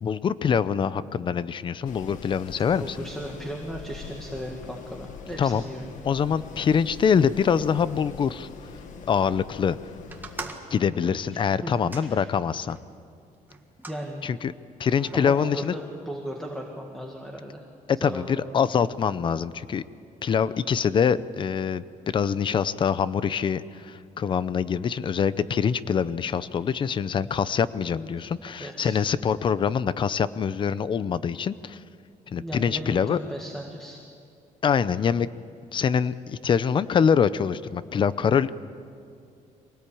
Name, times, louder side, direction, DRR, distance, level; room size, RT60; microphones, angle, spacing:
voice 1, 0.0-3.0 5.4-5.6 6.0-8.5 9.1-9.8 10.7-12.8 14.2-14.5 14.8-15.7 17.9-19.8 20.2-31.8 32.3-33.2 34.6-35.3 35.7-38.5, left 7 dB, 35° left, 16 dB, 0.6 m, -24 dB
Wind, 1.8-10.5, left 6 dB, 65° left, 1.6 m, -43 dB
voice 2, 2.7-5.9 11.3-11.7 12.0-12.3 13.9-14.3 15.1-17.6 18.0-18.4 28.6-29.1 32.3-34.0, equal, 5° left, 0 dB, 1.8 m, -36 dB
sound 1, 10.1-12.9 13.5-14.0 14.8-15.5, right 3 dB, 15° right, 1.7 m, -42 dB
24.0 x 18.5 x 8.6 m, 2.4 s
cardioid pair, 150°, 14 cm